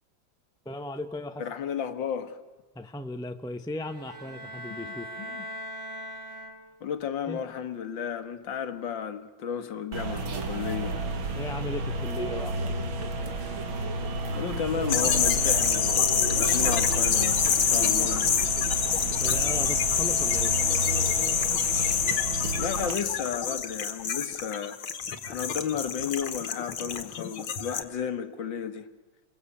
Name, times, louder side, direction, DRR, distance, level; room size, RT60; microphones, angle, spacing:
voice 1, 0.6-1.5 2.7-5.1 7.3-7.4 10.9-11.1 11.3-12.8 19.2-20.5, left 1 dB, 5° left, 0.5 m, -37 dB
voice 2, 1.4-2.4 5.2-5.4 6.8-11.0 14.4-18.3 22.6-24.8 25.2-28.9, left 8 dB, 65° left, 2.0 m, -33 dB
sound 1, 3.8-7.0, equal, 35° right, 3.0 m, -40 dB
sound 2, 9.9-22.9, right 2 dB, 70° right, 2.7 m, -32 dB
sound 3, 14.9-27.8, left 7 dB, 80° left, 2.3 m, -26 dB
28.5 x 22.5 x 8.5 m
omnidirectional pair, 2.2 m